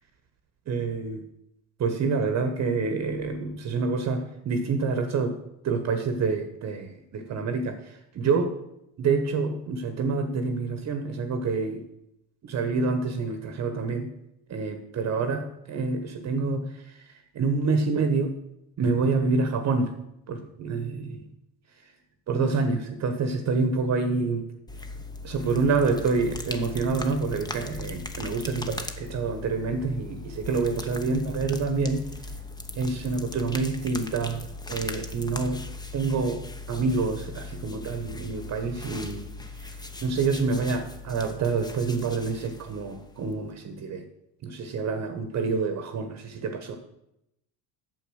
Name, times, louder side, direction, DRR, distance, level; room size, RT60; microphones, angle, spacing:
voice 1, 0.7-1.2 1.8-5.4 5.6-8.5 9.0-11.8 12.4-14.1 14.5-17.0 17.3-18.3 18.8-19.9 20.3-21.2 22.3-24.4 25.2-32.0 32.7-34.4 34.7-35.7 35.9-36.4 36.7-39.3 39.7-44.0 44.4-46.8, right 4 dB, 35° right, 7 dB, 1.1 m, -27 dB
sound 1, 24.7-43.6, left 3 dB, 10° left, 0.8 m, -39 dB
8.3 x 7.2 x 6.3 m, 0.83 s
supercardioid pair, 110°, 44 cm